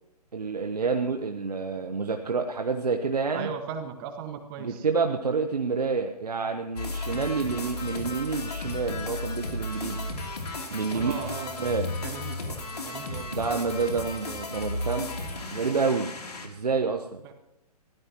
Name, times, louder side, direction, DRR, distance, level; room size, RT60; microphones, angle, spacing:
voice 1, 0.3-3.5 4.6-10.0 10.7-11.1 11.6-11.9 13.3-15.1 15.5-16.1 16.4-17.3, right 4 dB, 80° right, 5 dB, 1.2 m, -28 dB
voice 2, 3.3-4.9 10.9-11.7 12.0-13.4 17.2-17.3, right 7 dB, 35° right, 6 dB, 1.8 m, -37 dB
sound 1, 6.8-16.5, left 2 dB, 75° left, 3.2 m, -34 dB
21.5 x 15.5 x 3.0 m, 0.90 s
figure-of-eight pair, 125°, 20 cm